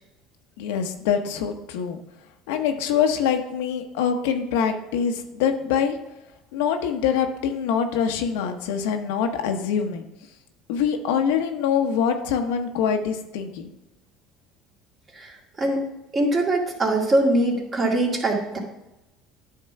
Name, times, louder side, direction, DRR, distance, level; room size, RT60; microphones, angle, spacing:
voice 1, 0.6-2.0 2.5-6.0 6.5-10.0 10.7-13.7, left 7 dB, 85° left, 5 dB, 0.9 m, -24 dB
voice 2, 15.1-15.9 16.1-18.6, right 1 dB, 30° right, -1 dB, 2.3 m, -22 dB
10.0 x 3.7 x 5.7 m, 0.95 s
supercardioid pair, 100°, 0 cm